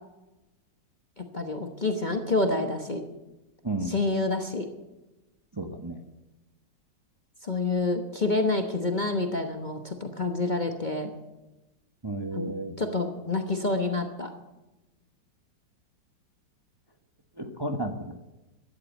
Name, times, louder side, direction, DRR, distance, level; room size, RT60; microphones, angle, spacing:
voice 1, 1.2-3.0 3.9-4.7 7.4-11.1 12.3-14.3, left 2 dB, 30° left, 5 dB, 1.0 m, -28 dB
voice 2, 3.6-4.0 5.5-6.0 12.0-12.7 17.4-18.1, right 2 dB, 20° right, 5 dB, 0.8 m, -32 dB
13.0 x 11.0 x 8.2 m, 1.0 s
omnidirectional pair, 1.9 m